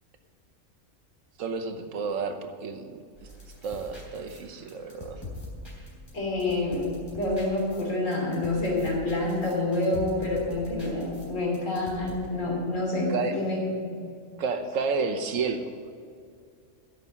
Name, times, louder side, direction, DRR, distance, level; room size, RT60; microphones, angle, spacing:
voice 1, 1.4-3.0 3.6-5.2 13.1-13.4 14.4-15.7, right 4 dB, 80° right, 7 dB, 1.3 m, -31 dB
sound 1, 3.1-12.1, left 1 dB, 20° left, 3.6 m, -43 dB
voice 2, 6.1-13.9, left 2 dB, 75° left, -2 dB, 3.3 m, -28 dB
11.0 x 6.6 x 8.4 m, 2.3 s
omnidirectional pair, 1.3 m